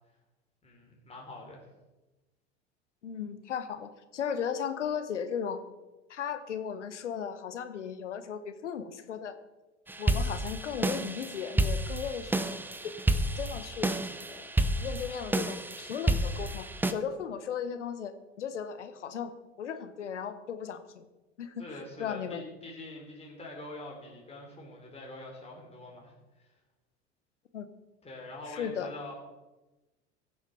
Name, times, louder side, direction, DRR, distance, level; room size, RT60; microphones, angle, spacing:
voice 1, 0.6-1.6 21.6-26.5 28.0-29.1, left 2 dB, 15° left, -1 dB, 3.3 m, -45 dB
voice 2, 3.0-5.6 6.1-9.4 10.0-12.3 12.8-12.9 13.4-13.9 14.3-14.5 14.8-19.3 19.6-21.0 21.4-22.4 27.5-27.7 28.5-28.9, left 7 dB, 80° left, 11 dB, 1.0 m, -36 dB
sound 1, 9.9-16.9, right 1 dB, 5° right, 0.6 m, -30 dB
15.5 x 7.0 x 4.2 m, 1.1 s
hypercardioid pair, 80°, 35 cm